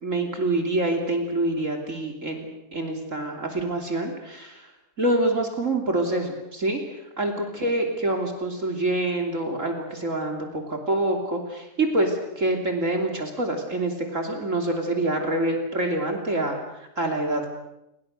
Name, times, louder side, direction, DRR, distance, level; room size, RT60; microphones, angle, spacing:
voice 1, 0.0-4.7 5.0-6.8 7.2-17.5, right 1 dB, 50° right, 3 dB, 3.5 m, -26 dB
29.5 x 23.0 x 6.6 m, 0.88 s
omnidirectional pair, 1.7 m